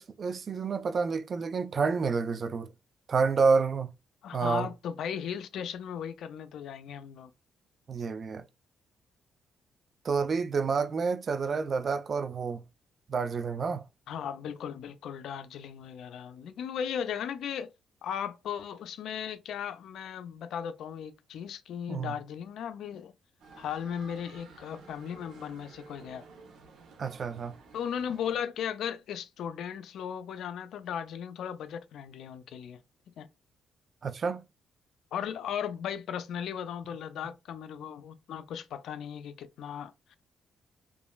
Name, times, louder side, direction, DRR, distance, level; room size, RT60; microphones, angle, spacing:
voice 1, 0.0-2.7 3.1-3.9 4.3-4.7 7.9-8.4 10.0-12.6 13.1-13.9 21.9-22.1 27.0-27.6 34.0-34.4, right 5 dB, 45° right, 0.3 m, -29 dB
voice 2, 4.2-7.3 14.1-17.7 18.0-23.1 23.6-26.2 27.7-32.8 33.2-33.3 35.1-40.2, left 8 dB, 75° left, 0.3 m, -37 dB
sound 1, 23.4-28.4, right 4 dB, 75° right, 0.8 m, -53 dB
3.0 x 2.4 x 2.2 m
cardioid pair, 90°, 0 cm